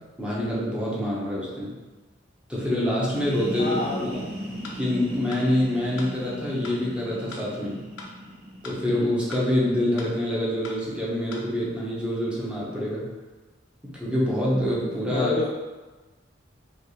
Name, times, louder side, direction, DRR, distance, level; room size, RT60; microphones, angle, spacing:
voice 1, 0.2-1.7 2.5-4.2 4.7-7.8 8.6-13.1 13.8-15.3, left 1 dB, 5° right, -7 dB, 1.1 m, -26 dB
sound 1, 3.0-10.5, equal, 40° right, 1.2 m, -39 dB
voice 2, 3.6-4.1 15.1-15.5, left 3 dB, 30° left, -1 dB, 0.3 m, -28 dB
sound 2, 4.6-4.8 5.3-5.4 6.0-6.1 6.6-6.8 7.3-7.4 8.0-8.1 8.6-8.8 9.3-9.4 10.0-10.1 10.6-10.8 11.3-11.4, left 3 dB, 70° left, 0.7 m, -40 dB
5.3 x 2.6 x 3.2 m, 1.2 s
head